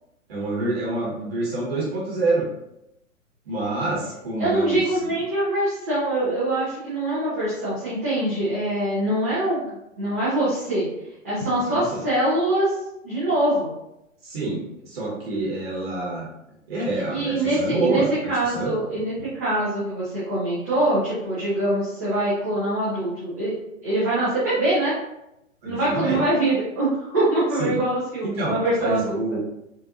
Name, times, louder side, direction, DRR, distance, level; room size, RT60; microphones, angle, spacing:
voice 1, 0.3-2.5 3.5-5.1 11.6-12.0 14.2-16.3 16.7-18.7 25.6-26.2 27.6-27.8 28.3-29.4, right 2 dB, 45° right, -5 dB, 1.0 m, -27 dB
voice 2, 4.4-10.9 11.2-12.7 13.0-13.7 17.1-18.0 18.3-23.5 23.8-24.9 25.6-29.2, right 1 dB, 15° right, -11 dB, 0.4 m, -24 dB
3.7 x 2.4 x 2.5 m, 0.87 s
figure-of-eight pair, 120°, 41 cm